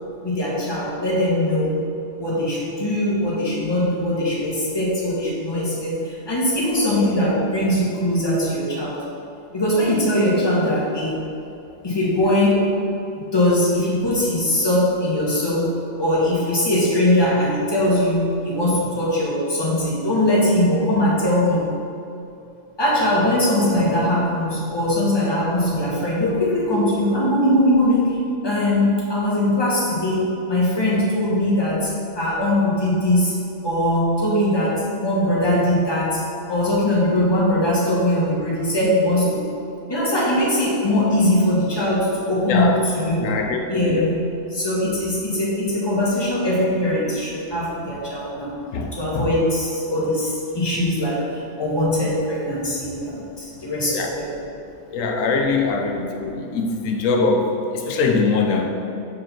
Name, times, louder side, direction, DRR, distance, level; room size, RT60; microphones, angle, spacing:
voice 1, 0.2-1.8 2.2-9.0 9.5-11.2 11.8-12.7 13.3-21.6 22.8-33.3 33.6-36.2 36.5-39.4 39.9-43.3 43.7-48.7 48.9-54.3 55.7-55.9, left 1 dB, 20° left, -6 dB, 1.3 m, -21 dB
voice 2, 43.2-44.1 48.7-49.3 53.9-54.1 54.9-58.7, left 4 dB, 90° left, 2 dB, 1.0 m, -22 dB
5.1 x 4.1 x 5.7 m, 2.7 s
omnidirectional pair, 1.3 m